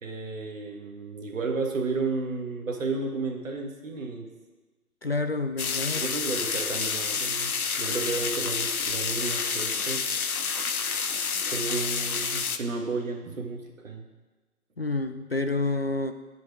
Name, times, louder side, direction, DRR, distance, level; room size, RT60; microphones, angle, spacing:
voice 1, 0.0-4.3 5.9-10.1 11.5-14.1, right 3 dB, 55° right, 2 dB, 1.8 m, -32 dB
voice 2, 5.0-6.0 11.3-11.4 14.8-16.1, left 3 dB, 45° left, 8 dB, 0.4 m, -28 dB
sound 1, 5.6-12.6, left 5 dB, 70° left, 0.8 m, -29 dB
14.0 x 5.1 x 4.9 m, 1.2 s
figure-of-eight pair, 140°, 45 cm